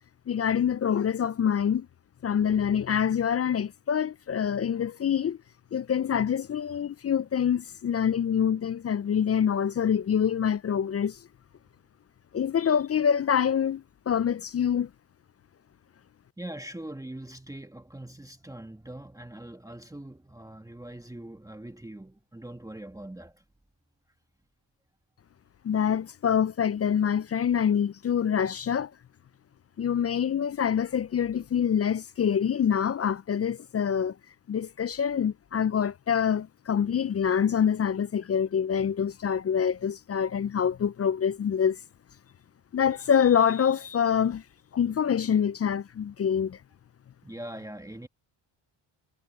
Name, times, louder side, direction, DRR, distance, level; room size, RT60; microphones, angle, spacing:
voice 1, 0.3-1.9 2.2-5.4 5.7-11.2 12.3-14.9 25.6-28.9 29.8-34.1 34.5-41.8 42.7-44.4 44.7-46.6, left 8 dB, 30° left, 0.5 m, -26 dB
voice 2, 16.4-23.4 47.2-48.1, right 1 dB, 5° right, 1.6 m, -42 dB
cardioid pair, 70°, 49 cm